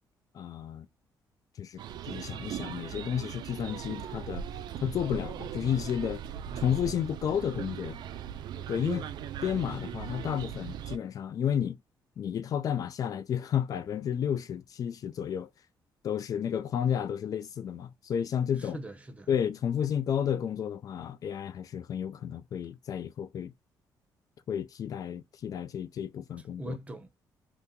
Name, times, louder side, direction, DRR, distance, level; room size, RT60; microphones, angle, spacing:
voice 1, 0.3-0.9 1.6-4.4 4.8-6.2 6.6-8.0 8.7-9.1 9.4-11.8 12.2-15.5 16.0-18.8 19.3-23.5 24.5-26.8, left 9 dB, 50° left, 0.3 m, -32 dB
sound 1, 1.8-11.0, right 9 dB, 70° right, 0.4 m, -39 dB
voice 2, 18.6-19.3 26.6-27.1, right 1 dB, 15° right, 0.7 m, -41 dB
2.8 x 2.5 x 3.6 m
cardioid pair, 120°, 8 cm